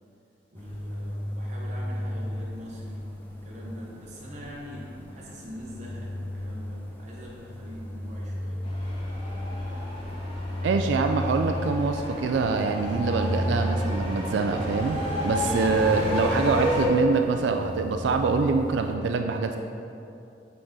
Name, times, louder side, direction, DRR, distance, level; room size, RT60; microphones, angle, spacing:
sound 1, 0.5-18.9, equal, 10° left, 0.6 m, -34 dB
voice 1, 0.5-3.1 3.4-8.6, equal, 40° right, -5 dB, 0.9 m, -43 dB
sound 2, 8.6-16.8, left 1 dB, 30° left, 1.2 m, -32 dB
voice 2, 10.6-19.6, right 4 dB, 75° right, 5 dB, 0.3 m, -25 dB
7.7 x 4.0 x 3.7 m, 2.7 s
head